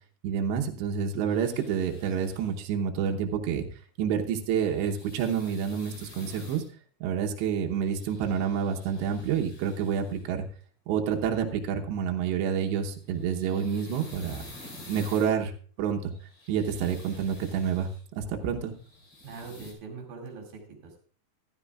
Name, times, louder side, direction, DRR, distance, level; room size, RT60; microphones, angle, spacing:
voice 1, 0.2-3.7 4.0-6.6 7.0-10.4 10.9-14.4 14.9-15.5 15.8-16.1 16.5-17.9 18.2-18.7, right 7 dB, 75° right, 2 dB, 3.1 m, -28 dB
sound 1, 1.2-2.6 4.5-6.7 7.9-10.2 13.0-15.3 16.1-18.0 18.6-19.7, left 2 dB, 35° left, 3.6 m, -49 dB
voice 2, 19.2-21.0, right 4 dB, 60° right, 1 dB, 3.9 m, -42 dB
14.0 x 12.5 x 2.3 m, 0.43 s
omnidirectional pair, 5.2 m